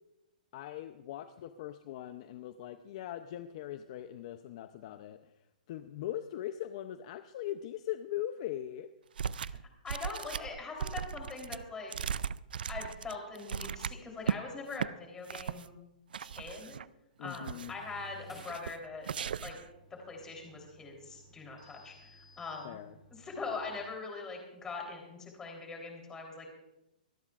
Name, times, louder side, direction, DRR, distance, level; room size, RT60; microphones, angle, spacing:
voice 1, 0.5-5.2 5.7-8.9 17.2-17.7 22.6-22.9, left 12 dB, 40° left, 10 dB, 0.6 m, -40 dB
sound 1, 9.2-9.6 9.9-14.4 14.7-14.9 15.3-15.7 16.1-16.9 17.2-17.8 18.4-18.8 19.0-19.7, right 7 dB, 85° right, 0.4 m, -37 dB
voice 2, 9.8-11.9 12.7-15.8 16.2-16.8 17.2-19.1 19.4-19.6 20.1-22.8 23.2-26.5, left 4 dB, 10° left, 1 dB, 3.5 m, -42 dB
coffee machine, 17.7-23.9, right 1 dB, 5° right, 3.1 m, -58 dB
25.5 x 12.5 x 2.5 m, 0.92 s
hypercardioid pair, 155°, 5 cm